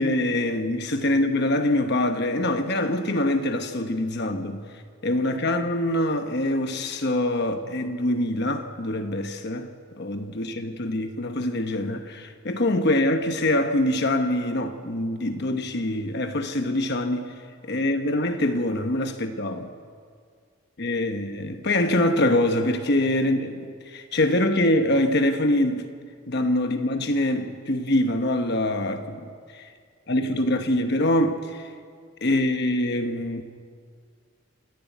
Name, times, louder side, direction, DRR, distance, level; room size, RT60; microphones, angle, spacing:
voice 1, 0.0-17.3 17.6-19.7 20.8-25.9 26.3-29.7 30.1-31.7 32.2-33.4, left 1 dB, 50° left, 1.1 m, -24 dB
27.5 x 11.5 x 9.2 m
head